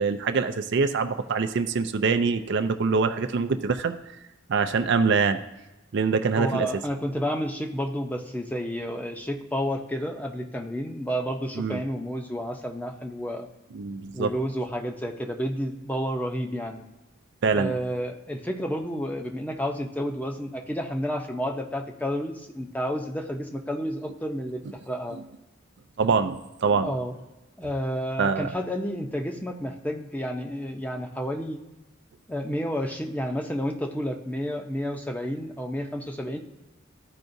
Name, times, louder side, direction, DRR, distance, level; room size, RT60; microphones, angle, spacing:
voice 1, 0.0-3.9 4.5-5.4 5.9-6.7 11.6-11.8 13.7-14.3 17.4-17.7 26.0-26.9 28.2-28.5, right 5 dB, 60° right, 8 dB, 0.4 m, -24 dB
voice 2, 6.3-13.5 14.1-16.8 17.5-24.6 24.9-25.2 26.8-27.2 27.6-31.6 32.3-36.4, equal, 10° left, 3 dB, 0.7 m, -30 dB
13.5 x 4.7 x 2.6 m, 1.0 s
head